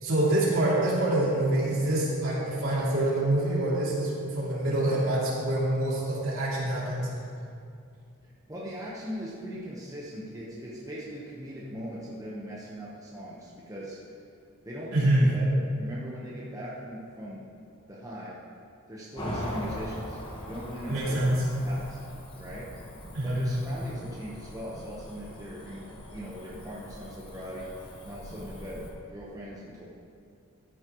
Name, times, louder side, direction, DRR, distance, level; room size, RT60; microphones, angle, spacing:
voice 1, 0.0-7.1 14.9-15.3 20.9-21.4 23.1-23.4, right 1 dB, 65° right, -6 dB, 2.9 m, -26 dB
voice 2, 8.5-14.0 14.6-17.5 17.9-18.4 18.9-20.2 20.5-21.2 21.6-22.0 22.4-22.8 23.2-29.8, equal, 15° right, -6 dB, 1.1 m, -40 dB
Cricket / Motor vehicle (road), 19.2-28.9, left 1 dB, 25° left, 1.4 m, -41 dB
14.0 x 9.8 x 3.1 m, 2.4 s
head